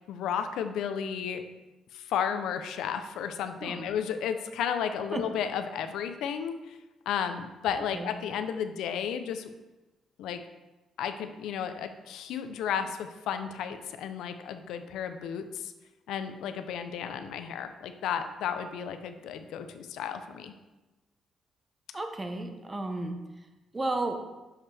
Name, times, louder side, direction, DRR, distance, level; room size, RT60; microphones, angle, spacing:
voice 1, 0.1-1.4 1.9-6.8 7.1-9.5 10.2-10.4 11.0-15.7 16.1-20.5, left 8 dB, 85° left, 9 dB, 0.5 m, -33 dB
voice 2, 21.9-23.1 23.7-24.2, right 2 dB, 25° right, 5 dB, 0.8 m, -33 dB
6.5 x 5.8 x 3.3 m, 1.1 s
cardioid pair, 90°, 0 cm